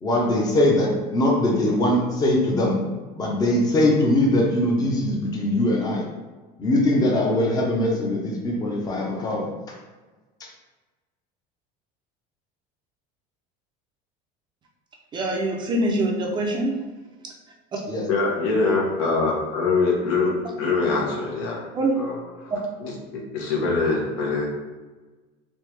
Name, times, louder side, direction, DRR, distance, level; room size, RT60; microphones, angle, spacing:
voice 1, 0.0-2.8 3.1-6.0 6.6-9.5 10.4-10.5 17.9-18.0, left 1 dB, 20° left, -2 dB, 0.7 m, -21 dB
voice 2, 15.1-16.7 21.7-21.9, right 1 dB, 25° right, 0 dB, 0.5 m, -24 dB
voice 3, 18.1-21.7 21.9-22.5 22.8-24.5, left 3 dB, 75° left, -2 dB, 1.0 m, -24 dB
3.4 x 3.0 x 3.3 m, 1.3 s
cardioid pair, 160°, 19 cm